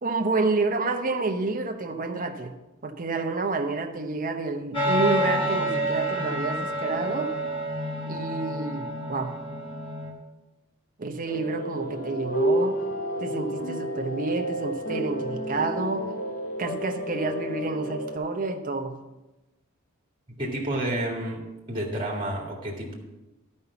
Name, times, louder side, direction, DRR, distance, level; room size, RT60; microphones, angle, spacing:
voice 1, 0.0-2.5 2.8-7.3 8.1-9.4 11.0-12.8 13.2-16.1 16.6-19.0, right 3 dB, 40° right, 6 dB, 0.8 m, -29 dB
sound 1, 4.7-10.1, right 1 dB, 25° left, 1.6 m, -28 dB
sound 2, 11.3-18.2, equal, 45° left, 1.0 m, -30 dB
voice 2, 20.3-21.4 21.7-23.0, right 1 dB, 25° right, -1 dB, 1.8 m, -30 dB
11.5 x 5.4 x 6.9 m, 1.1 s
head